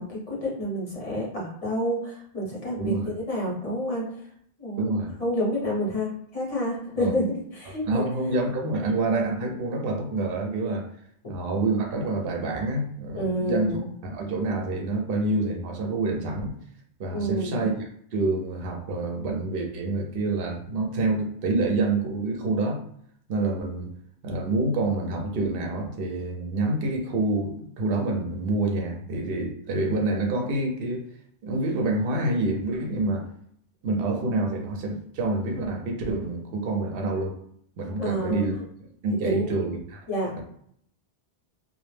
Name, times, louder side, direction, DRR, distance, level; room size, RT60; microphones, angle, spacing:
voice 1, 0.0-4.0 4.6-4.9 5.2-8.0 8.7-8.9 13.1-13.9 17.1-17.7 38.0-38.5 39.2-39.5 40.1-40.3, equal, 40° left, -4 dB, 0.9 m, -29 dB
voice 2, 2.8-3.1 4.8-5.1 7.0-7.1 7.9-10.9 11.3-13.8 14.0-16.6 17.0-22.8 23.3-23.9 24.2-31.0 31.4-33.3 33.8-37.4 37.8-38.5 39.0-40.0, right 2 dB, 65° right, 2 dB, 0.8 m, -27 dB
2.1 x 2.0 x 3.1 m, 0.66 s
omnidirectional pair, 1.1 m